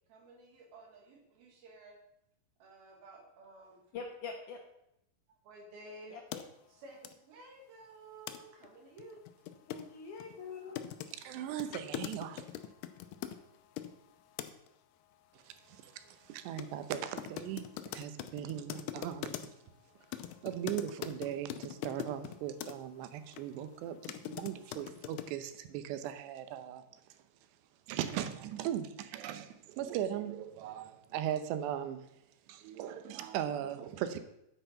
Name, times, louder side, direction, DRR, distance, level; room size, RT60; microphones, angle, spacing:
voice 1, 0.1-2.0 2.6-3.8 5.3-6.2 6.7-9.2, right 2 dB, 65° right, 1 dB, 3.8 m, -53 dB
voice 2, 3.9-4.6 6.1-6.4 9.7-10.8, left 5 dB, 65° left, 2 dB, 2.1 m, -44 dB
sound 1, 6.3-6.4 7.0-7.1 8.3-8.4 8.6-8.7 9.0-13.9 14.4-14.7 16.6-16.7 16.9-19.7 20.1-22.7 23.3-23.4 23.8-25.3, left 11 dB, 85° left, 2.7 m, -42 dB
voice 3, 11.2-12.4 15.3-17.6 17.9-19.4 20.4-26.8 27.9-32.1 32.5-34.2, right 10 dB, 90° right, 11 dB, 3.0 m, -38 dB
9.2 x 9.0 x 5.7 m, 0.81 s
omnidirectional pair, 4.8 m